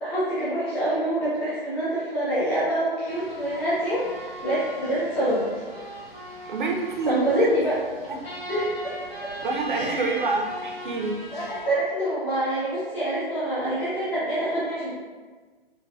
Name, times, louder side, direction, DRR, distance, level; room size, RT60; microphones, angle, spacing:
voice 1, 0.0-5.5 7.1-7.8 8.5-8.9 9.7-10.2 11.3-14.9, right 1 dB, 5° left, -10 dB, 0.4 m, -26 dB
sound 1, 3.1-11.7, right 1 dB, 85° left, 0.9 m, -39 dB
voice 2, 6.5-7.5 9.4-11.2, right 3 dB, 55° right, 1 dB, 0.6 m, -27 dB
4.0 x 2.3 x 2.3 m, 1.4 s
figure-of-eight pair, 120°, 29 cm